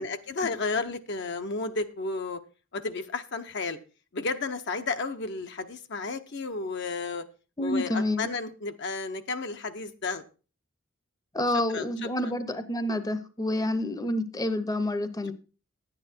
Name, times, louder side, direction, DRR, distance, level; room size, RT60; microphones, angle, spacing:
voice 1, 0.0-2.4 2.7-3.8 4.1-7.3 7.6-10.2 11.7-11.9 12.2-12.3, left 3 dB, 60° left, 7 dB, 0.9 m, -32 dB
voice 2, 7.6-8.3 11.3-15.3, left 1 dB, 20° left, 11 dB, 0.7 m, -28 dB
10.5 x 8.9 x 4.4 m, 0.35 s
head